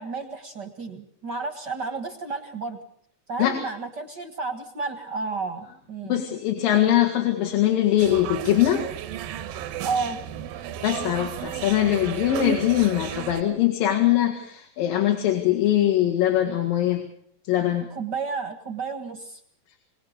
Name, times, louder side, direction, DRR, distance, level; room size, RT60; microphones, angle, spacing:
voice 1, 0.0-2.8 3.3-6.2 9.8-10.2 17.9-19.4, right 4 dB, 50° right, 7 dB, 1.4 m, -32 dB
voice 2, 6.1-8.8 10.8-17.0 17.5-17.9, left 12 dB, 75° left, 1 dB, 3.5 m, -22 dB
sound 1, 8.0-13.4, right 11 dB, 75° right, 2.6 m, -34 dB
23.5 x 19.5 x 6.6 m, 0.67 s
omnidirectional pair, 4.2 m